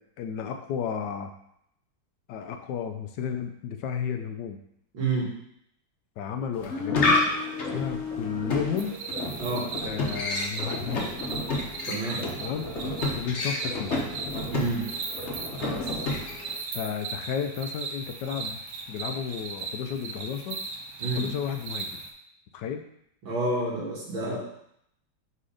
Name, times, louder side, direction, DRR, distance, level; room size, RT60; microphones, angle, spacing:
voice 1, 0.0-1.3 2.3-4.6 6.2-7.2 7.7-9.0 9.8-11.1 12.4-12.7 13.1-13.9 15.7-16.0 16.7-18.6 18.9-20.6 21.2-22.0 22.5-22.8 24.2-24.4, left 7 dB, 75° left, 6 dB, 1.1 m, -33 dB
voice 2, 4.9-5.3 9.4-9.7 11.9-12.2 14.5-14.9 21.0-21.3 23.2-24.4, right 2 dB, 85° right, -5 dB, 2.5 m, -29 dB
sound 1, 6.5-16.6, left 2 dB, 45° left, 1.1 m, -30 dB
sound 2, 8.8-22.1, right 4 dB, 60° right, 0.8 m, -38 dB
5.2 x 4.2 x 4.9 m, 0.74 s
omnidirectional pair, 2.0 m